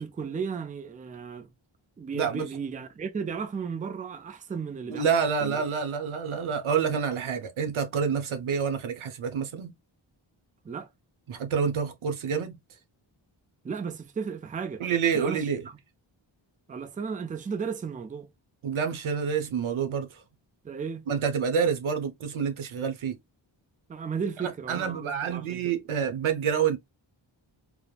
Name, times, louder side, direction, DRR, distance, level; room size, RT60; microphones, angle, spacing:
voice 1, 0.0-1.5 2.0-5.1 5.4-5.6 10.6-10.9 13.6-14.8 15.1-15.8 16.7-18.3 20.6-21.1 23.9-25.7, right 6 dB, 20° right, 0.3 m, -34 dB
voice 2, 2.1-2.5 4.9-9.7 11.3-12.6 14.8-15.7 18.6-20.2 21.1-23.2 24.4-26.8, right 6 dB, 90° right, 0.7 m, -28 dB
3.1 x 2.0 x 2.3 m
wide cardioid pair, 90°, 47 cm